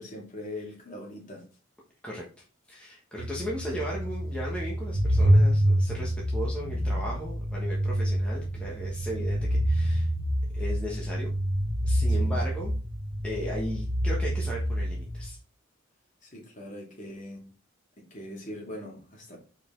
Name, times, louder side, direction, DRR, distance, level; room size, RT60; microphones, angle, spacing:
voice 1, 0.0-1.4 12.1-12.3 16.2-17.5 18.0-19.4, left 1 dB, 40° left, -2 dB, 2.5 m, -41 dB
voice 2, 2.7-10.1 10.5-11.3 11.8-12.7 13.2-15.4, equal, 5° left, -4 dB, 1.3 m, -36 dB
sound 1, 3.2-15.3, equal, 85° right, 1.4 m, -27 dB
6.8 x 4.9 x 3.8 m, 0.37 s
head